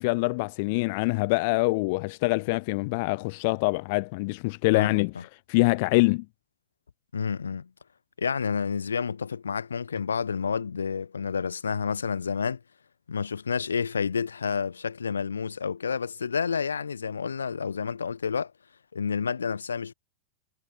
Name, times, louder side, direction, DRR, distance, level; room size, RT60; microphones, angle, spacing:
voice 1, 0.0-5.1 5.5-6.2, left 27 dB, 50° left, 0.6 m, -25 dB
voice 2, 7.1-7.7 8.2-12.6 13.1-18.5 18.9-19.9, left 6 dB, 70° left, 1.1 m, -29 dB
figure-of-eight pair, 90°, 0 cm